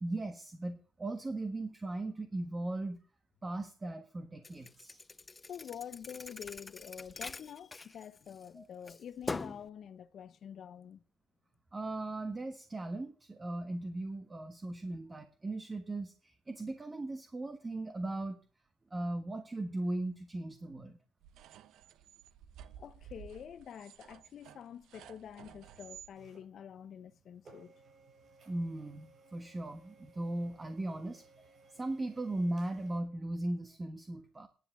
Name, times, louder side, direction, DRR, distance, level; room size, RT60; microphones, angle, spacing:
voice 1, 0.0-3.0 3.4-5.0 8.5-8.6 11.7-18.4 18.9-21.0 28.5-34.5, right 2 dB, 25° right, 1.4 m, -38 dB
Thump thud, 4.4-8.5 8.9-9.7, left 3 dB, 25° left, 0.5 m, -43 dB
voice 2, 5.4-11.0 22.8-27.7, left 8 dB, 60° left, 0.8 m, -47 dB
sound 1, 21.2-26.1, right 9 dB, 85° right, 0.8 m, -54 dB
sound 2, 26.1-33.0, right 3 dB, 50° right, 6.4 m, -61 dB
10.5 x 7.8 x 7.2 m
cardioid pair, 90°, 0 cm